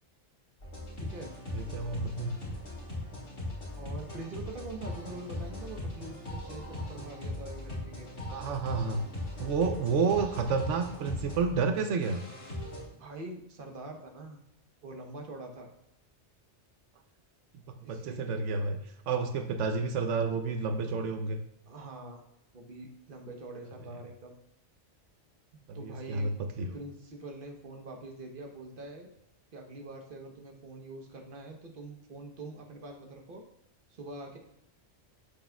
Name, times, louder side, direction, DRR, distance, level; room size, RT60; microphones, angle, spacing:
sound 1, 0.6-12.8, left 1 dB, 85° left, 2.7 m, -39 dB
voice 1, 1.0-1.4 3.7-8.1 12.9-14.4 14.8-15.7 17.8-18.3 21.7-22.2 22.5-24.4 25.5-26.3 26.7-29.1 29.5-33.4 33.9-34.4, right 2 dB, 50° right, 2 dB, 1.2 m, -44 dB
voice 2, 1.5-2.4 8.3-9.0 9.4-12.2 17.5-21.4 25.7-26.8, right 4 dB, 85° right, 6 dB, 1.0 m, -30 dB
11.5 x 6.3 x 2.3 m, 0.81 s
omnidirectional pair, 1.2 m